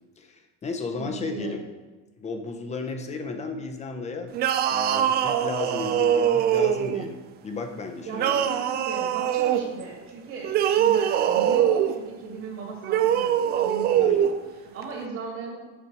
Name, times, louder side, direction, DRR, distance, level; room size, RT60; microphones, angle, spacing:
voice 1, 0.2-1.6 2.2-4.3 4.7-8.5 14.0-14.3, left 4 dB, 20° left, 6 dB, 0.7 m, -34 dB
voice 2, 0.9-1.6 8.0-15.7, right 4 dB, 55° right, -3 dB, 2.3 m, -37 dB
sound 1, 4.3-7.1 8.1-9.7 10.4-12.0 12.8-14.3, right 10 dB, 30° right, 0.4 m, -23 dB
6.8 x 5.1 x 4.5 m, 1.2 s
supercardioid pair, 130°, 33 cm